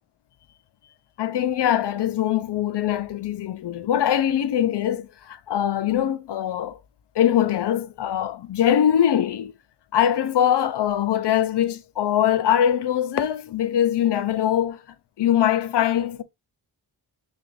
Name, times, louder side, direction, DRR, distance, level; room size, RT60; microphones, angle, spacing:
voice 1, 1.2-6.8 7.2-9.5 9.9-14.8 15.2-16.2, left 10 dB, 75° left, 0.6 m, -22 dB
6.0 x 2.5 x 2.5 m
wide cardioid pair, 120°, 42 cm